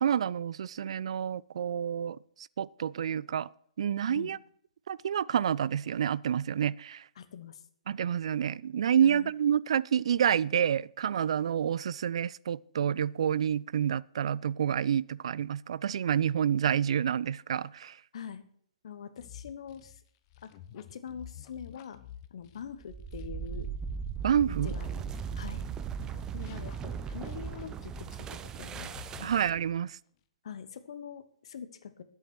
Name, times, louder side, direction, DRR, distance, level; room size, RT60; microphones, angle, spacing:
voice 1, 0.0-2.2 2.6-3.5 3.8-4.4 4.9-7.0 7.9-18.0 24.2-24.7 29.2-30.0, right 9 dB, 60° right, 0.4 m, -28 dB
voice 2, 7.2-7.6 9.0-9.3 18.1-18.4 18.8-20.0 20.4-22.0 22.3-23.7 24.4-25.7 26.3-29.4 30.4-32.0, left 7 dB, 60° left, 1.2 m, -44 dB
sound 1, 19.2-25.7 26.0-28.5 28.8-29.8, left 12 dB, 40° left, 0.9 m, -50 dB
sound 2, 22.8-29.7, right 7 dB, 20° right, 0.6 m, -38 dB
11.0 x 8.3 x 6.3 m
figure-of-eight pair, 125°, 4 cm